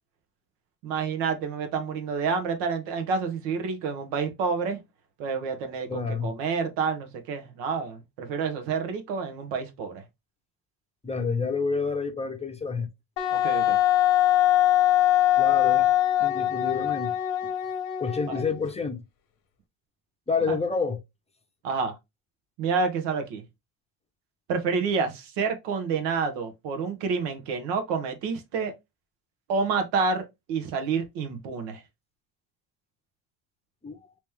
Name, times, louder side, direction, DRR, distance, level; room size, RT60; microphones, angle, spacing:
voice 1, 0.8-4.8 5.2-10.0 13.3-13.8 20.5-20.6 21.6-22.0 22.6-23.4 24.5-28.7 29.5-31.8, right 5 dB, 80° right, 1.2 m, -28 dB
voice 2, 5.9-6.3 11.0-12.9 15.4-15.9 16.2-17.2 18.0-19.0 20.3-21.0 33.8-34.0, left 5 dB, 15° left, 0.6 m, -28 dB
Wind instrument woodwind instrument, 13.2-18.6, left 13 dB, 90° left, 1.0 m, -22 dB
3.1 x 3.0 x 3.4 m
cardioid pair, 120°, 42 cm